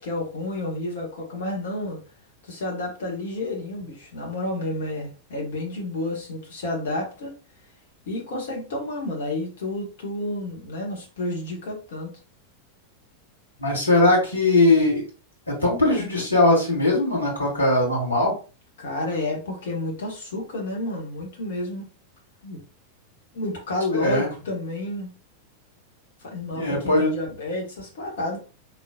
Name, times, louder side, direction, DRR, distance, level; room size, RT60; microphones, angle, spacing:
voice 1, 0.0-2.0 2.5-7.3 8.1-12.1 18.8-21.9 22.4-22.6 23.3-25.1 26.2-28.4, left 2 dB, 60° left, -1 dB, 1.5 m, -30 dB
voice 2, 13.6-15.0 15.5-18.3 24.0-24.3 26.5-27.1, left 2 dB, 75° left, -2 dB, 1.7 m, -20 dB
4.0 x 3.0 x 2.4 m, 0.35 s
figure-of-eight pair, 90°, 0 cm